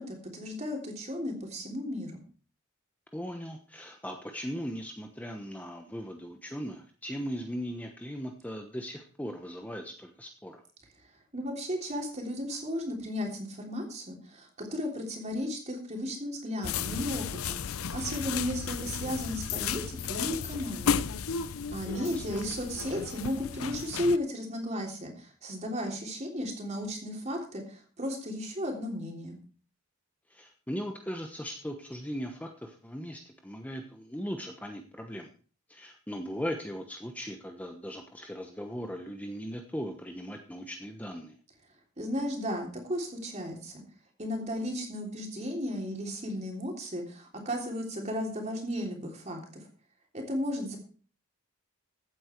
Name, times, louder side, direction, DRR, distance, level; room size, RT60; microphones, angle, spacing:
voice 1, 0.0-2.2 11.3-17.6 17.9-21.1 21.7-29.4 42.0-43.8 44.2-49.6 50.1-50.8, equal, 30° right, 2 dB, 3.4 m, -34 dB
voice 2, 3.1-10.6 21.8-22.2 30.3-35.3 35.7-41.4, equal, 5° left, 4 dB, 1.0 m, -38 dB
sound 1, 16.6-24.2, left 7 dB, 80° left, 0.6 m, -34 dB
15.0 x 8.9 x 4.6 m, 0.40 s
head